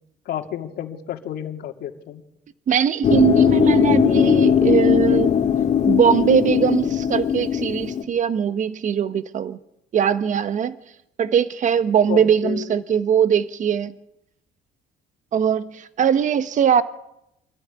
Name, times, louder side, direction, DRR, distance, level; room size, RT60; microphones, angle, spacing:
voice 1, 0.3-2.2 12.1-12.8, left 11 dB, 70° left, 4 dB, 2.5 m, -31 dB
voice 2, 2.7-5.4 5.8-9.6 9.9-10.7 11.2-13.9 15.3-16.8, right 8 dB, 50° right, 12 dB, 1.3 m, -20 dB
sound 1, 3.0-8.0, left 8 dB, 45° left, 2.6 m, -18 dB
26.0 x 14.0 x 9.9 m, 0.83 s
cardioid pair, 110°, 17 cm